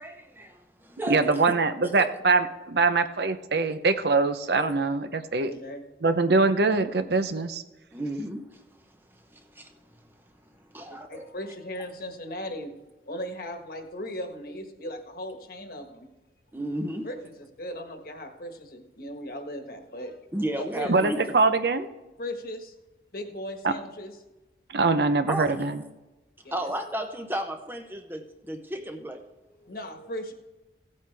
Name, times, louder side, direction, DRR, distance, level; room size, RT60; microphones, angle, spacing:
voice 1, 0.0-1.5 1.8-2.1 4.6-4.7 7.9-8.6 9.1-9.8 10.6-11.2 16.5-17.1 20.3-21.3 25.3-25.5 26.5-29.3, right 1 dB, 10° right, 5 dB, 0.7 m, -34 dB
voice 2, 1.1-5.5 6.0-7.6 20.9-21.9 23.6-23.7 24.7-25.8, right 3 dB, 65° right, 10 dB, 0.7 m, -23 dB
voice 3, 5.4-5.8 10.9-12.7 13.0-16.1 17.0-20.2 20.5-21.1 22.2-22.7 23.1-24.2 26.4-26.7 29.5-30.3, equal, 55° left, 5 dB, 1.4 m, -37 dB
16.0 x 8.5 x 3.4 m, 1.1 s
head